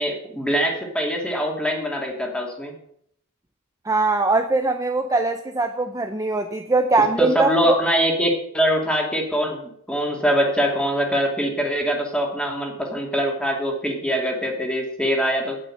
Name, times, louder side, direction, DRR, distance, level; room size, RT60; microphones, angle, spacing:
voice 1, 0.0-2.7 7.2-15.6, equal, 5° left, 0 dB, 2.5 m, -23 dB
voice 2, 3.9-7.7, right 3 dB, 15° right, 5 dB, 0.6 m, -21 dB
9.3 x 8.7 x 7.8 m, 0.71 s
head